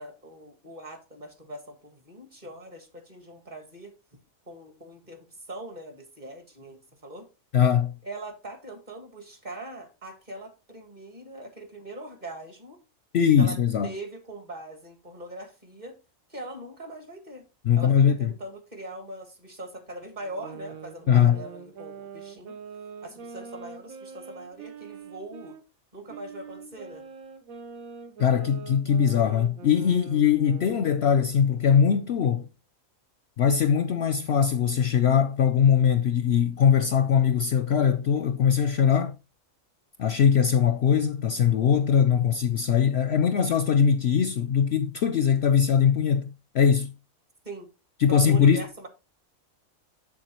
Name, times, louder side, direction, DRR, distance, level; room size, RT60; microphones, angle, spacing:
voice 1, 0.0-3.9 4.5-7.3 8.0-12.8 13.4-13.6 13.8-16.0 16.3-17.4 17.7-22.6 23.0-25.6 25.9-27.0 47.4-47.7 48.1-48.9, right 1 dB, 35° right, 1.6 m, -41 dB
voice 2, 7.5-8.0 13.1-13.9 17.6-18.3 21.1-21.4 28.2-32.5 33.4-39.1 40.0-46.3 46.5-46.9 48.0-48.7, left 7 dB, 65° left, 0.7 m, -21 dB
sound 1, 20.2-25.6 26.1-31.0, right 6 dB, 75° right, 1.4 m, -43 dB
7.3 x 7.2 x 3.0 m
omnidirectional pair, 1.4 m